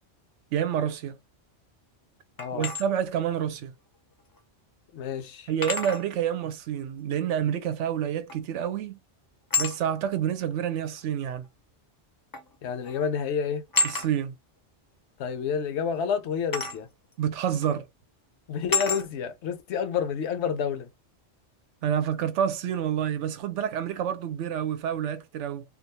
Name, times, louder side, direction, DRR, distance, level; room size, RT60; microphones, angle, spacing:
voice 1, 0.5-1.2 2.5-3.7 5.5-9.0 9.6-11.5 13.8-14.3 17.2-17.9 21.8-25.6, right 9 dB, 85° right, 0.9 m, -28 dB
voice 2, 2.4-2.7 4.9-5.5 12.6-13.6 15.2-16.9 18.5-20.9, left 7 dB, 75° left, 0.8 m, -29 dB
sound 1, 2.4-2.8 4.4-4.5 5.6-6.1 8.3-8.6 9.5-9.8 11.0-11.1 12.3-12.5 12.8-13.1 13.7-14.1 16.5-16.8 17.6-17.7 18.7-19.1, left 4 dB, 30° left, 0.4 m, -28 dB
2.5 x 2.3 x 2.7 m
omnidirectional pair, 1.2 m